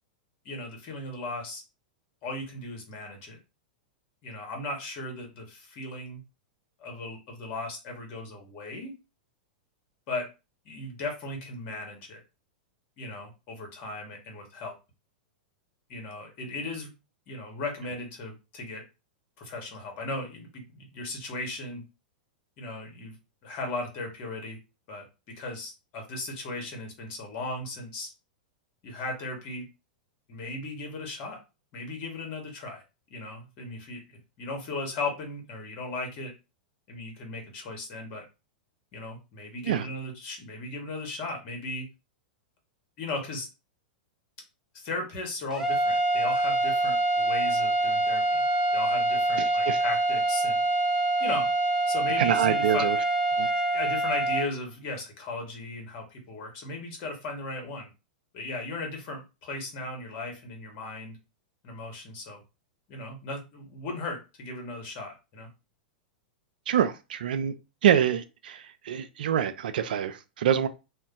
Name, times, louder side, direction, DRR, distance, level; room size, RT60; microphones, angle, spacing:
voice 1, 0.4-1.6 2.2-3.4 4.2-6.2 6.8-8.9 10.1-10.3 10.6-12.2 13.0-14.8 15.9-16.9 17.3-18.8 19.4-21.8 22.6-23.1 23.4-24.6 24.9-25.1 25.3-28.1 28.8-29.7 30.3-31.4 31.7-32.8 33.1-34.0 34.4-36.3 36.9-38.2 38.9-41.9 43.0-43.5 44.7-48.4 48.7-50.6 51.2-51.5 51.8-52.9 53.7-57.9 58.3-61.2 61.6-62.4 62.9-65.5, left 2 dB, 45° left, 1.2 m, -36 dB
sound 1, 45.5-54.5, right 2 dB, 10° right, 0.8 m, -25 dB
voice 2, 49.4-49.8 52.2-53.0 53.4-53.5 66.7-67.5 67.8-70.7, right 9 dB, 70° right, 0.4 m, -26 dB
2.5 x 2.2 x 3.7 m
hypercardioid pair, 105°, 5 cm